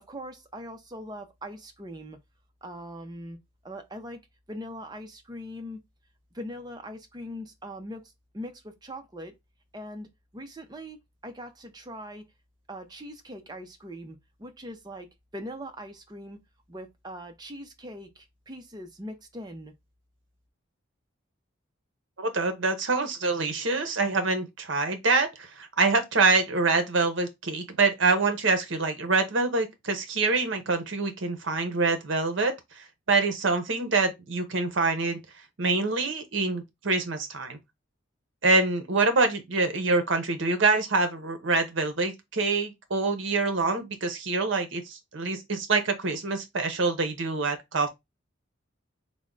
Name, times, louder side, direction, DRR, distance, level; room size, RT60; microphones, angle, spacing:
voice 1, 0.0-2.2 2.6-3.4 3.6-4.2 4.5-5.8 6.3-8.0 8.3-9.3 9.7-10.1 10.3-12.2 12.7-15.1 15.3-16.4 16.7-19.7, equal, 20° right, 0.5 m, -41 dB
voice 2, 22.2-35.2 35.6-37.6 38.4-47.9, right 3 dB, 65° right, 0.8 m, -25 dB
3.5 x 2.1 x 3.7 m
head